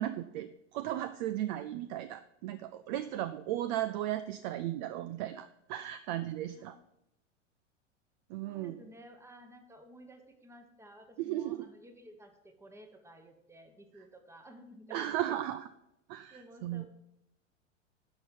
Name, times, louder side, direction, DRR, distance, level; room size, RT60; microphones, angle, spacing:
voice 1, 0.0-6.8 8.3-8.7 11.2-11.7 14.9-15.7 16.1-16.8, right 13 dB, 40° right, 13 dB, 0.4 m, -36 dB
voice 2, 8.4-15.4 16.3-16.9, equal, 5° right, 6 dB, 1.1 m, -54 dB
10.5 x 5.7 x 5.3 m, 0.87 s
figure-of-eight pair, 95°, 37 cm